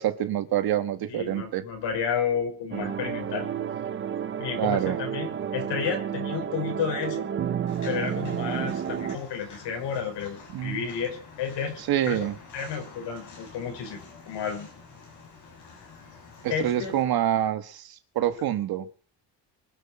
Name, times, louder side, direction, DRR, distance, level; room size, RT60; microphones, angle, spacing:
voice 1, 0.0-1.6 4.6-5.0 10.5-10.9 11.9-12.3 16.4-18.9, right 11 dB, 55° right, 10 dB, 1.4 m, -26 dB
voice 2, 1.1-3.5 4.4-7.3 7.8-11.8 12.1-12.3 12.5-14.7 16.5-16.9, left 7 dB, 70° left, 3 dB, 5.4 m, -31 dB
sound 1, 2.7-9.2, right 8 dB, 25° right, 0.6 m, -31 dB
Walk footsteps, 7.7-17.0, left 4 dB, 40° left, 7.1 m, -48 dB
24.0 x 8.1 x 5.7 m, 0.42 s
cardioid pair, 175°, 44 cm